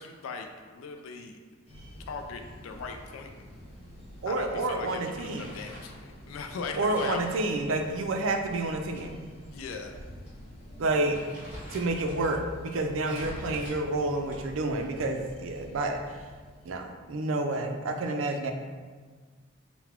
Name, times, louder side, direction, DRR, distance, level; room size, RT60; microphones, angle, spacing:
voice 1, 0.0-1.4 2.1-3.3 4.3-7.2 9.5-9.9 13.1-13.4, left 4 dB, 85° left, 5 dB, 0.4 m, -39 dB
sound 1, 1.7-16.7, equal, 30° left, 1.0 m, -48 dB
voice 2, 4.2-5.5 6.8-9.2 10.8-11.2 11.7-16.0 16.6-18.5, right 2 dB, 75° right, 4 dB, 0.4 m, -29 dB
Crumpling crinkling, 5.0-6.0 6.9-9.0 9.4-9.5 10.3-10.4 10.8-12.3 13.0-14.6, equal, 5° right, 1.3 m, -45 dB
3.9 x 2.1 x 4.3 m, 1.5 s
head